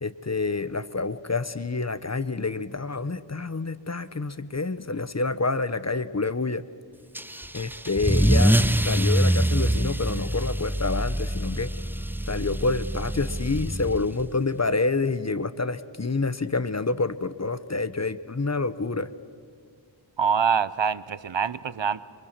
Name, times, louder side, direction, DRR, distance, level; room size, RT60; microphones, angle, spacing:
voice 1, 0.0-6.6 7.5-8.6 8.8-11.7 12.3-19.1, left 3 dB, 35° left, 14 dB, 0.8 m, -28 dB
Car / Engine starting / Accelerating revving vroom, 7.1-14.3, right 1 dB, 5° right, 0.6 m, -24 dB
voice 2, 20.2-22.0, right 6 dB, 65° right, 16 dB, 0.8 m, -25 dB
26.5 x 23.0 x 7.4 m, 2.1 s
wide cardioid pair, 60°, 48 cm